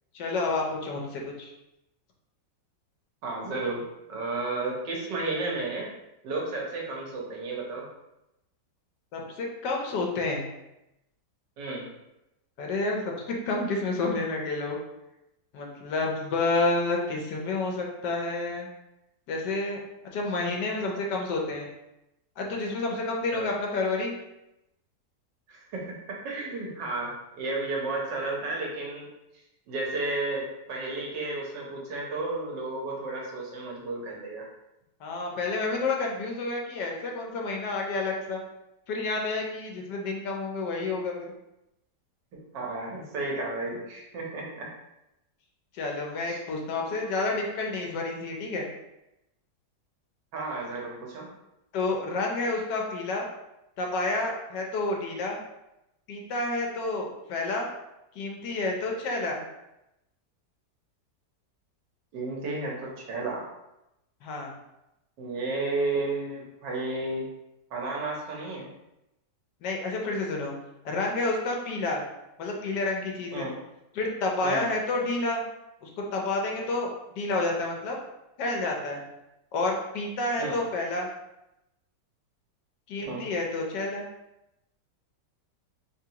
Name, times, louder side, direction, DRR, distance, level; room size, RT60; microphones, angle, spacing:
voice 1, 0.1-1.5 9.1-10.5 12.6-14.8 15.5-18.7 19.3-19.8 20.1-21.7 22.4-24.2 35.0-38.4 38.9-41.3 45.7-48.7 51.7-53.2 53.8-55.4 56.1-57.7 58.1-59.4 64.2-64.5 69.6-70.5 70.8-72.0 72.4-73.5 73.9-75.4 75.8-78.0 78.4-79.0 79.5-81.1 82.9-84.0, left 2 dB, 75° left, 0 dB, 1.4 m, -29 dB
voice 2, 3.2-3.8 4.1-5.9 6.2-7.9 11.6-11.9 23.3-23.5 25.5-29.1 29.7-34.5 42.5-44.7 46.3-46.4 50.3-51.3 62.1-63.5 65.2-67.3 67.7-68.7 73.3-73.5 74.4-74.6 80.4-80.6 83.0-83.2, right 2 dB, 80° right, -2 dB, 1.6 m, -32 dB
3.6 x 3.5 x 2.8 m, 0.90 s
omnidirectional pair, 1.9 m